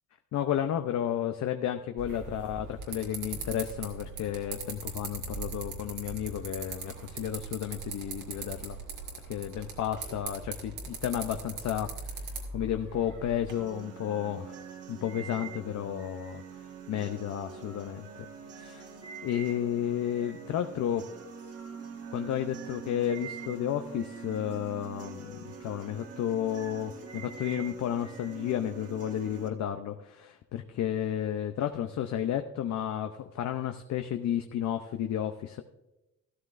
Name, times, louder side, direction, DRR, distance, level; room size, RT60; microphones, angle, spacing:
voice 1, 0.3-8.8 9.3-14.6 14.9-16.4 16.9-18.3 18.5-18.9 19.2-21.1 22.1-35.6, left 10 dB, 65° left, 7 dB, 0.7 m, -32 dB
sound 1, 2.0-13.5, right 4 dB, 80° right, 2.2 m, -40 dB
sound 2, 13.5-29.5, right 6 dB, 50° right, 1.6 m, -44 dB
13.0 x 13.0 x 2.6 m, 0.96 s
cardioid pair, 90°, 30 cm